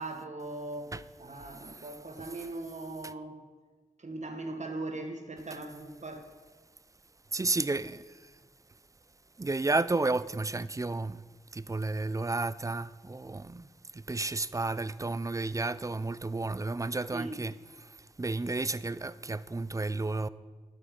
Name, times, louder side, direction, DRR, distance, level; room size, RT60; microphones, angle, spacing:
voice 1, 0.0-3.4 4.0-6.3 17.1-17.4, right 2 dB, 55° right, 1.6 m, -40 dB
voice 2, 7.3-8.0 9.4-11.2 11.5-13.7 13.9-17.5 18.2-20.3, right 3 dB, 20° right, 0.4 m, -32 dB
12.0 x 6.6 x 5.3 m
cardioid pair, 40°, 15 cm